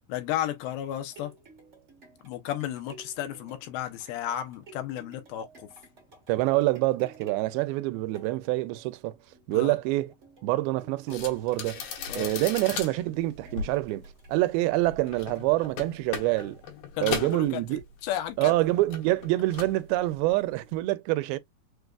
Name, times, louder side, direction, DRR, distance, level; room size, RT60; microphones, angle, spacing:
voice 1, 0.1-1.3 2.2-5.5 9.5-9.8 12.1-12.3 17.0-17.6 18.0-18.5, left 11 dB, 90° left, 2.6 m, -33 dB
sound 1, 1.0-18.0 18.5-18.6, right 3 dB, 40° right, 1.0 m, -54 dB
voice 2, 6.3-9.2 9.5-10.1 10.4-11.9 12.1-16.6 17.0-17.8 18.4-21.4, right 18 dB, 85° right, 2.4 m, -26 dB
sound 2, 11.1-18.3 18.6-19.9 20.1-20.5, left 6 dB, 70° left, 2.8 m, -37 dB
6.6 x 2.3 x 2.3 m
omnidirectional pair, 4.3 m